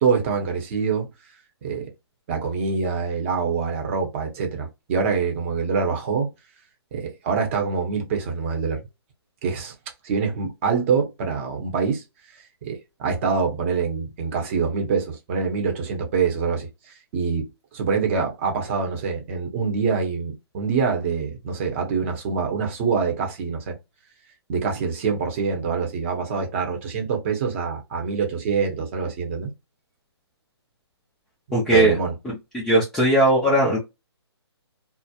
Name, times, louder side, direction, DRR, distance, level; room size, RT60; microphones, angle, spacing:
voice 1, 0.0-1.1 1.6-1.9 2.3-6.3 6.9-8.9 9.4-9.7 10.0-12.0 12.3-23.8 24.5-29.5 31.7-32.2, right 5 dB, 30° right, 0.7 m, -25 dB
voice 2, 31.5-32.0 32.5-33.8, right 1 dB, 5° left, 0.3 m, -18 dB
2.3 x 2.0 x 2.7 m
hypercardioid pair, 150°, 14 cm